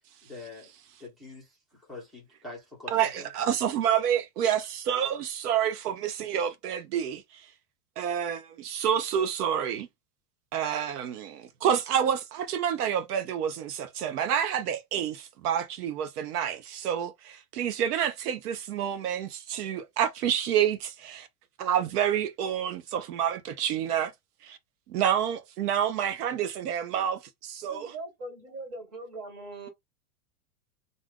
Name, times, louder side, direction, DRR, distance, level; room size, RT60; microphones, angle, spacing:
voice 1, 0.2-0.7 1.0-3.3, left 3 dB, ahead, 0.8 m, -45 dB
voice 2, 2.9-7.5 8.0-9.9 10.5-21.3 21.6-24.1 24.4-24.6 24.9-27.9, right 9 dB, 80° right, 0.7 m, -28 dB
voice 3, 27.6-29.7, right 2 dB, 35° right, 1.6 m, -41 dB
2.5 x 2.3 x 3.5 m
supercardioid pair, 155°, 46 cm